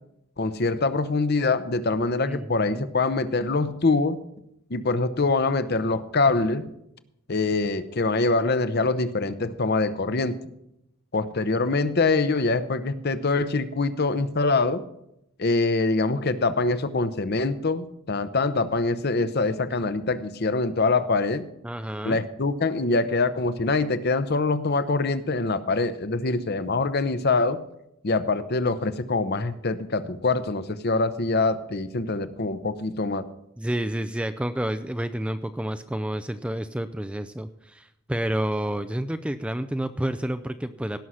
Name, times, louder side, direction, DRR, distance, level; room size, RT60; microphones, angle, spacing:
voice 1, 0.4-4.2 4.7-6.7 7.3-10.4 11.1-14.8 15.4-21.5 22.0-27.6 28.0-33.3, left 3 dB, 45° left, 12 dB, 0.7 m, -24 dB
voice 2, 2.3-2.9 21.6-22.2 33.6-41.0, right 1 dB, 5° right, 10 dB, 0.3 m, -29 dB
17.5 x 6.3 x 5.6 m, 0.80 s
head